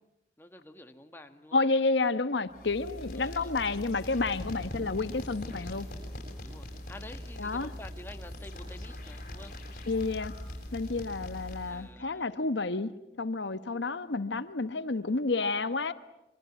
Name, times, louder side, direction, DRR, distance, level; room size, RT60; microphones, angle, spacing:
voice 1, 0.4-1.6 3.1-3.5 6.4-9.5 11.6-12.3, left 1 dB, 10° left, 1.5 m, -49 dB
voice 2, 1.5-5.9 7.4-7.7 9.9-10.3 10.7-12.9 13.2-15.9, left 3 dB, 80° left, 1.1 m, -30 dB
sound 1, 2.5-11.9, left 1 dB, 45° left, 7.2 m, -41 dB
26.5 x 24.0 x 9.3 m
head